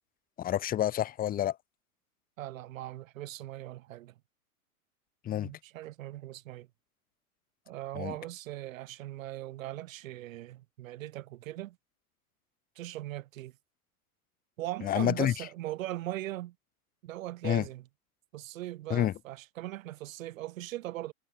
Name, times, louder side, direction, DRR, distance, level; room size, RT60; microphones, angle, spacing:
voice 1, 0.4-1.6 5.2-5.6 7.9-8.1 14.8-15.5 17.4-17.7 18.9-19.2, left 11 dB, 20° left, 0.9 m, -29 dB
voice 2, 2.4-4.1 5.4-6.7 7.7-11.8 12.8-13.5 14.6-16.6 17.0-17.8 18.3-21.1, right 15 dB, 60° right, 3.6 m, -39 dB
hypercardioid pair, 115°, 44 cm